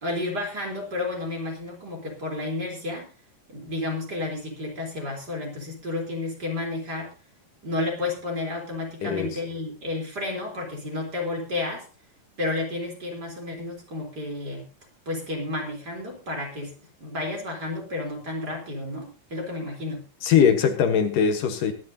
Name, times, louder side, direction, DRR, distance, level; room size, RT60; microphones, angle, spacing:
voice 1, 0.0-3.1 3.5-7.1 7.6-11.9 12.4-14.7 15.1-20.1, left 2 dB, 30° right, 1 dB, 4.2 m, -31 dB
voice 2, 9.0-9.4 20.2-21.7, left 7 dB, 70° left, 7 dB, 2.8 m, -21 dB
22.5 x 10.5 x 2.8 m, 0.32 s
omnidirectional pair, 4.0 m